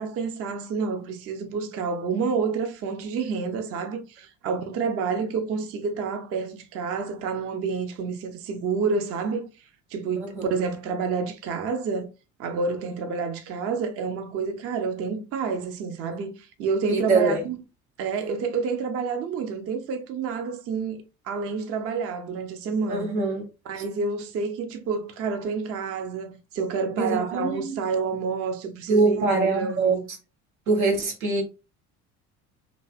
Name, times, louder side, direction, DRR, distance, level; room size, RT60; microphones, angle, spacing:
voice 1, 0.0-9.5 9.9-12.1 12.4-17.6 18.0-23.1 23.7-30.0, right 5 dB, 35° right, 0.5 m, -29 dB
voice 2, 10.2-10.5 16.9-17.4 22.9-23.4 27.0-27.7 28.9-30.0 30.7-31.4, right 3 dB, 85° right, 1.0 m, -23 dB
2.6 x 2.2 x 2.3 m
hypercardioid pair, 60°, 41 cm